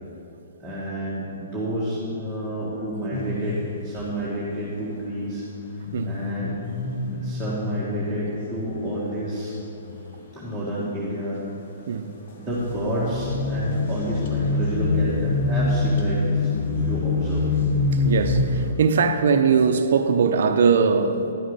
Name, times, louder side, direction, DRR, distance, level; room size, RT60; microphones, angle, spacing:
voice 1, 0.6-3.6 3.8-5.4 6.0-6.6 7.1-9.5 10.3-11.4 12.4-17.4, right 1 dB, ahead, 1.7 m, -30 dB
sound 1, 3.1-4.1 5.6-10.1 10.5-11.0 12.4-18.7, left 3 dB, 55° left, 1.2 m, -26 dB
voice 2, 18.0-21.2, right 5 dB, 65° right, 0.6 m, -20 dB
11.0 x 6.4 x 5.5 m
hypercardioid pair, 150°, 0 cm